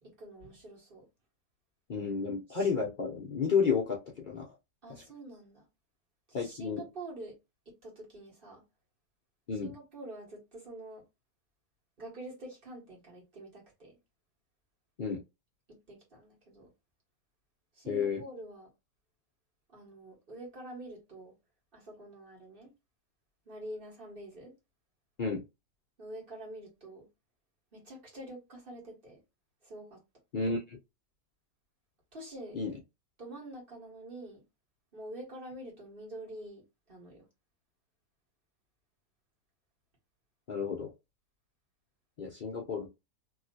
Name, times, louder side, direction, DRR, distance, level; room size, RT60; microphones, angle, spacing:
voice 1, 0.0-1.0 2.5-2.7 4.8-5.6 6.4-7.3 7.7-8.6 9.6-11.0 12.0-13.9 15.7-16.7 17.8-18.7 19.7-21.3 21.7-22.7 23.5-24.5 26.0-27.0 27.7-29.2 29.6-30.0 32.1-32.6 33.2-34.4 34.9-36.6 36.9-37.2, right 1 dB, 35° right, 1.6 m, -46 dB
voice 2, 1.9-4.5 4.9-5.0 6.3-6.8 9.5-9.7 15.0-15.2 17.9-18.2 25.2-25.4 30.3-30.8 32.5-32.8 40.5-40.9 42.2-42.9, left 5 dB, 85° left, 0.4 m, -31 dB
3.1 x 2.8 x 2.7 m
omnidirectional pair, 1.8 m